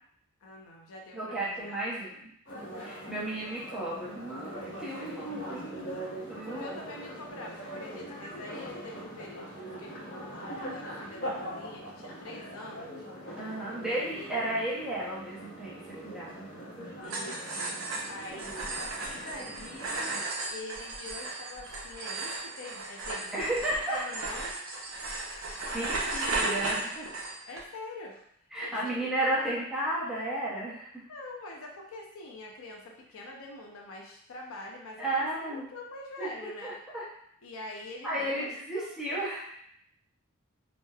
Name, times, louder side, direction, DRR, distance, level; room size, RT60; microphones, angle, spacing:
voice 1, 0.4-1.8 6.4-13.1 13.8-14.4 17.0-17.6 18.1-19.9 20.4-23.6 23.9-24.6 25.6-26.0 27.2-29.7 31.1-36.8 37.4-38.9, left 2 dB, 80° left, 0 dB, 0.5 m, -45 dB
voice 2, 1.1-2.3 2.8-6.0 6.3-6.7 13.4-16.5 23.3-24.0 25.6-27.1 28.5-31.0 35.0-35.7 36.2-37.0 38.0-39.6, right 1 dB, 5° right, -8 dB, 0.6 m, -33 dB
sound 1, 2.4-20.2, right 1 dB, 60° left, 0.8 m, -42 dB
sound 2, 17.0-27.6, right 2 dB, 70° right, 0.5 m, -35 dB
2.9 x 2.0 x 2.3 m, 0.70 s
head